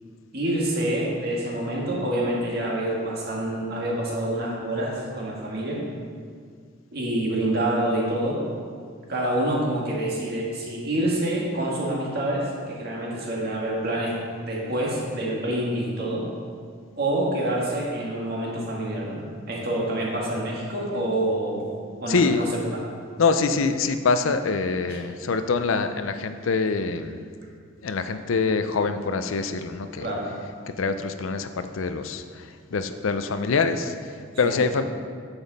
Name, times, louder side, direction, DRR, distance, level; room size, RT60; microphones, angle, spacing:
voice 1, 0.3-5.8 6.9-8.4 9.1-14.1 14.4-16.2 17.0-19.2 19.5-21.7 22.0-22.5 24.9-25.0 30.0-30.3 34.4-34.6, right 1 dB, 50° right, -3 dB, 1.9 m, -27 dB
voice 2, 22.1-22.5 23.2-27.2 27.8-30.1 30.8-34.8, left 4 dB, 85° left, 9 dB, 0.5 m, -25 dB
9.0 x 7.1 x 4.1 m, 2.1 s
head